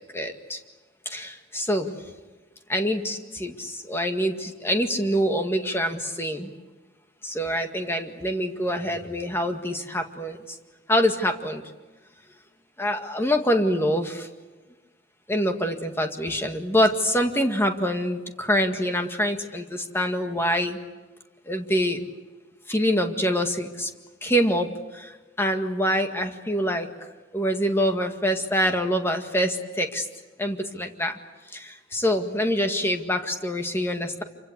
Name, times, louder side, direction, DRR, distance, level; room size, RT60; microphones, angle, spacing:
voice 1, 0.1-0.6 1.1-2.0 2.7-6.5 7.2-10.6 10.9-11.6 12.8-14.3 15.3-20.8 21.5-22.1 22.7-23.9 24.2-26.9 27.3-30.1 30.4-31.2 31.5-34.2, equal, 15° left, 5 dB, 1.9 m, -25 dB
27.5 x 25.0 x 8.2 m, 1.2 s
head